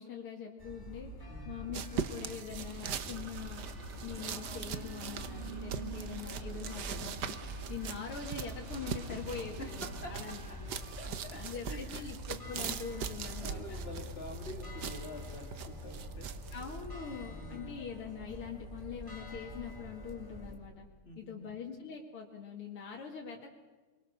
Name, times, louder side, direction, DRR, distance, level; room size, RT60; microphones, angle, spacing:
voice 1, 0.0-3.7 4.0-10.7 11.0-13.8 16.5-20.9 21.2-23.5, left 6 dB, 80° left, -2 dB, 3.0 m, -43 dB
sound 1, 0.6-20.6, equal, 10° left, 4.3 m, -45 dB
voice 2, 1.3-1.6 9.1-9.2 9.8-10.1 11.0-11.4 11.6-12.1 12.9-13.1 13.4-16.6 17.1-17.7 21.0-21.5, equal, 25° left, 3 dB, 2.9 m, -47 dB
sound 2, 1.7-16.8, right 8 dB, 60° right, 1.5 m, -42 dB
sound 3, 2.8-12.3, right 5 dB, 75° right, 3.1 m, -51 dB
28.5 x 23.0 x 6.6 m, 1.3 s
omnidirectional pair, 2.4 m